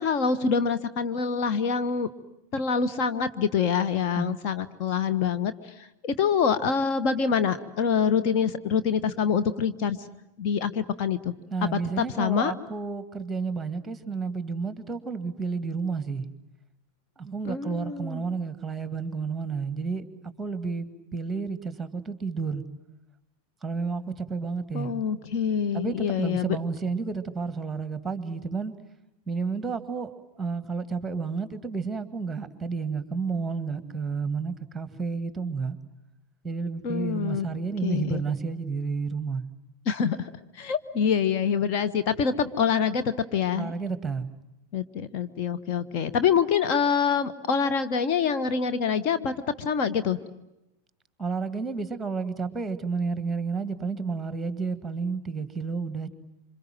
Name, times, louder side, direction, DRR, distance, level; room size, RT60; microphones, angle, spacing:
voice 1, 0.0-2.1 2.5-10.0 10.4-11.3 12.2-12.5 17.4-18.2 24.7-26.6 36.8-37.5 37.8-38.2 39.9-43.0 43.3-43.7 44.7-50.2, left 6 dB, 40° left, 9 dB, 1.3 m, -26 dB
voice 2, 11.5-16.3 17.2-20.1 20.4-22.6 23.6-24.9 25.7-28.7 29.3-35.8 36.4-39.4 43.5-44.3 51.2-56.1, right 5 dB, 10° right, 12 dB, 2.0 m, -31 dB
27.5 x 26.0 x 7.6 m, 0.90 s
figure-of-eight pair, 90°, 0 cm